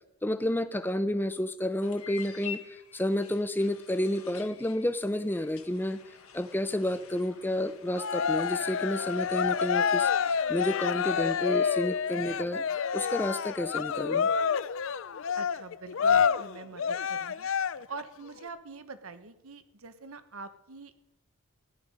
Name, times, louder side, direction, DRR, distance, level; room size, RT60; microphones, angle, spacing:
voice 1, 0.2-2.6 2.9-6.0 6.3-10.1 10.5-12.6 12.9-14.3, left 1 dB, 10° left, 12 dB, 0.6 m, -30 dB
sound 1, 1.8-10.4, left 8 dB, 85° left, 1.5 m, -48 dB
Cheering, 8.0-18.0, left 6 dB, 65° left, 0.5 m, -28 dB
voice 2, 15.4-17.5 17.9-21.0, right 4 dB, 80° right, 11 dB, 1.1 m, -44 dB
16.0 x 11.0 x 5.2 m, 0.94 s
head